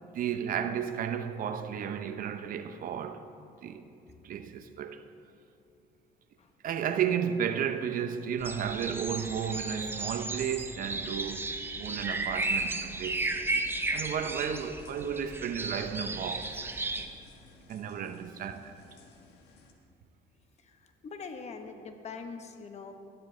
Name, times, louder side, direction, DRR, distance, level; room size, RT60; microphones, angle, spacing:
voice 1, 0.1-3.2 3.6-3.8 4.2-5.0 6.6-11.5 11.8-17.0 17.7-18.7, right 8 dB, 55° right, 0.6 m, -33 dB
sound 1, 8.4-17.1, right 2 dB, 15° right, 0.7 m, -34 dB
sound 2, 12.4-19.7, left 4 dB, 85° left, 1.4 m, -57 dB
voice 2, 21.0-22.9, left 5 dB, 40° left, 1.0 m, -42 dB
13.5 x 11.0 x 3.3 m
cardioid pair, 110°, 17 cm